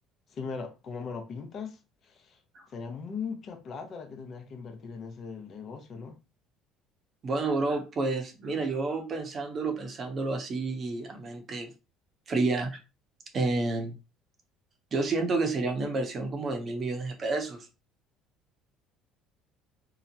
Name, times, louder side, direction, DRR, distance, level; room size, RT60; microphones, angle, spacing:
voice 1, 0.3-2.4 2.7-6.2, left 5 dB, 50° left, 0.6 m, -39 dB
voice 2, 7.2-11.7 12.3-12.8 13.3-13.9 14.9-17.7, right 3 dB, 40° right, 0.8 m, -30 dB
2.9 x 2.0 x 2.7 m
supercardioid pair, 80°, 0 cm